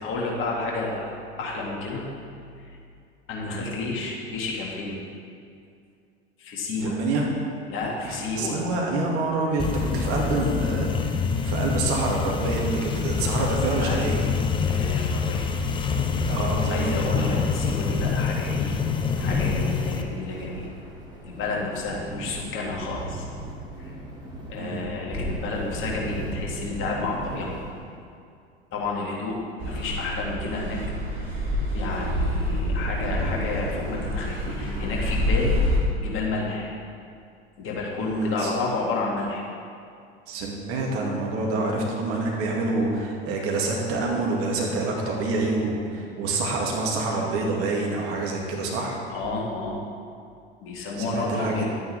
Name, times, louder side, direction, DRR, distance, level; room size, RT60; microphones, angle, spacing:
voice 1, 0.0-2.0 2.6-2.8 3.3-5.0 6.4-7.0 7.7-8.6 13.8-14.1 14.7-15.5 16.7-18.8 19.2-20.7 21.2-23.3 23.8-23.9 24.5-27.5 28.7-30.8 31.7-35.6 36.0-36.7 37.6-39.4 49.1-49.8 50.6-51.7, left 3 dB, 40° left, -2 dB, 2.1 m, -30 dB
voice 2, 3.4-3.8 6.8-7.3 8.0-14.2 16.2-17.5 22.4-22.5 24.6-24.9 38.0-38.5 40.3-49.0 51.0-51.7, right 2 dB, 45° right, -1 dB, 1.9 m, -27 dB
sound 1, 9.6-20.0, left 6 dB, 15° left, 0.6 m, -26 dB
sound 2, 15.3-28.0, right 1 dB, 15° right, 2.6 m, -36 dB
Car passing by / Accelerating revving vroom, 29.6-35.8, left 1 dB, 70° right, 2.3 m, -27 dB
11.5 x 9.2 x 3.4 m, 2.4 s
figure-of-eight pair, 80°, 32 cm